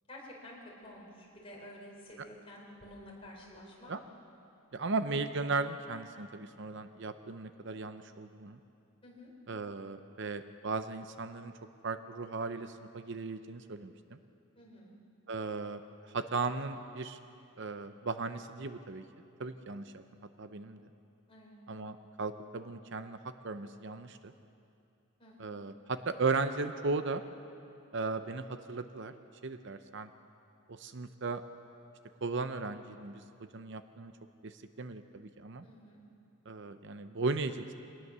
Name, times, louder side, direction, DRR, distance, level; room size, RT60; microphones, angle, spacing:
voice 1, 0.1-3.9 9.0-9.3 14.5-14.9 21.3-21.6 25.2-25.5 35.6-36.0, left 1 dB, 25° left, -3 dB, 4.5 m, -51 dB
voice 2, 4.7-8.6 9.5-11.5 11.8-14.2 15.3-17.2 17.6-19.0 19.4-20.0 20.4-20.8 21.7-24.3 25.4-27.2 27.9-29.1 29.4-30.1 30.7-31.4 32.2-34.1 34.4-35.7 36.5-37.7, right 3 dB, 55° right, 10 dB, 0.6 m, -36 dB
23.5 x 19.0 x 6.8 m, 2.6 s
head